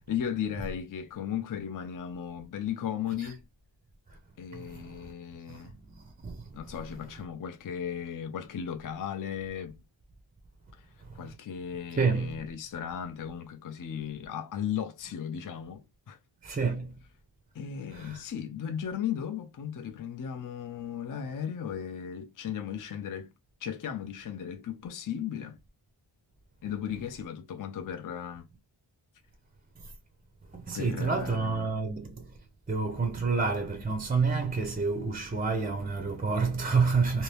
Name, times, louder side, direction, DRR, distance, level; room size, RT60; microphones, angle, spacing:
voice 1, 0.1-3.4 4.4-5.7 6.5-9.8 10.7-10.9 11.1-16.2 17.5-23.3 23.6-25.6 26.6-28.5 30.7-31.8, left 8 dB, 40° left, 0.5 m, -36 dB
voice 2, 4.5-5.1 5.5-5.6 6.0-6.4 12.0-12.4 16.4-17.0 17.9-18.2 30.5-32.3 32.7-37.2, right 4 dB, 20° right, 0.5 m, -29 dB
2.7 x 2.6 x 3.3 m
wide cardioid pair, 115°, 49 cm